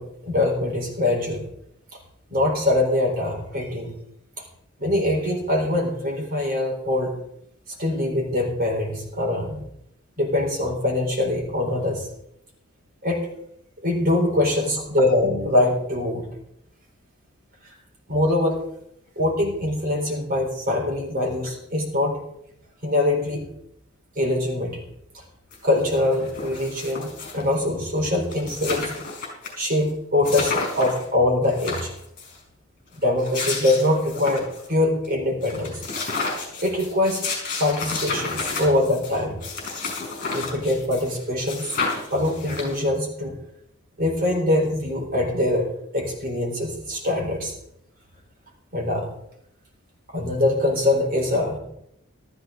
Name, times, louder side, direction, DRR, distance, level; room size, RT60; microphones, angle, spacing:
voice 1, 0.0-1.5 2.3-3.9 4.8-7.1 7.8-9.7 10.2-12.1 13.0-13.3 13.8-16.3 18.1-18.6 19.2-22.2 22.8-23.5 24.2-24.8 25.6-28.9 29.6-31.9 33.0-35.8 36.6-37.3 37.6-39.4 40.3-41.7 42.1-43.3 44.0-45.7 45.9-47.5 48.7-49.1 50.1-51.6, left 1 dB, 45° right, 0 dB, 4.1 m, -23 dB
sound 1, 25.5-25.6 25.9-27.5 28.0-28.1 28.2-29.5 29.8-29.9 30.2-31.0 31.4-32.3 33.0-34.7 35.0-35.1 35.4-41.2 41.5-43.0, left 4 dB, 40° left, 5.1 m, -31 dB
14.0 x 13.5 x 3.8 m, 0.74 s
head